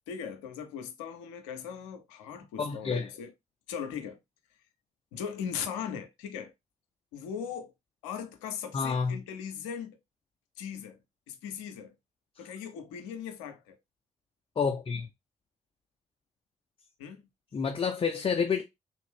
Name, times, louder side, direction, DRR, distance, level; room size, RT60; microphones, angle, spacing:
voice 1, 0.1-3.3 3.7-4.2 5.1-6.5 7.1-7.7 8.0-10.0 10.6-11.0 11.3-11.9 12.4-13.8 17.0-17.3, left 7 dB, 75° left, 0.6 m, -39 dB
voice 2, 2.6-3.1 8.7-9.2 14.6-15.1 17.5-18.7, left 5 dB, 35° left, 0.5 m, -29 dB
3.6 x 2.5 x 3.2 m
figure-of-eight pair, 40°, 16 cm